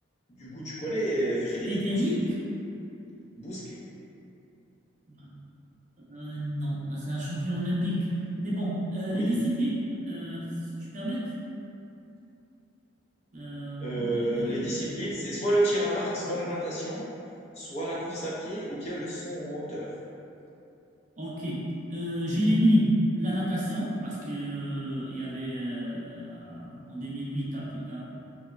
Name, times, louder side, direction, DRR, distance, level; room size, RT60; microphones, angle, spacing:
voice 1, 0.4-2.0 3.3-3.8 9.1-9.3 13.8-17.0 17.5-19.9, right 1 dB, 35° left, -7 dB, 0.5 m, -30 dB
voice 2, 1.7-2.4 5.1-5.2 6.1-8.0 8.4-9.8 10.1-10.4 10.8-11.2 13.3-14.9 21.2-21.6 21.9-22.9 23.2-28.0, equal, 35° right, -7 dB, 0.5 m, -30 dB
3.0 x 2.0 x 2.4 m, 2.7 s
head